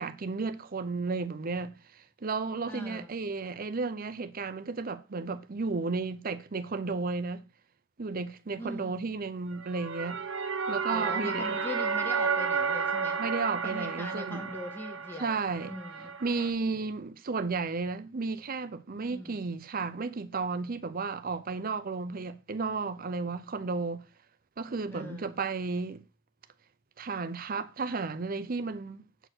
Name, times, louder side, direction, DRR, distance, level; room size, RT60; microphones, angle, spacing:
voice 1, 0.0-1.8 2.2-7.4 8.0-10.2 10.7-11.6 13.2-14.5 15.2-15.8 16.2-24.0 24.6-26.0 27.0-29.0, right 4 dB, 45° right, 0.6 m, -33 dB
voice 2, 2.7-3.1 8.6-9.1 10.9-13.2 13.6-15.4 15.6-16.1 19.1-19.4 24.9-25.4, left 1 dB, 10° left, 1.5 m, -41 dB
sound 1, 9.5-16.5, right 5 dB, 65° right, 1.0 m, -32 dB
7.9 x 4.4 x 6.1 m
head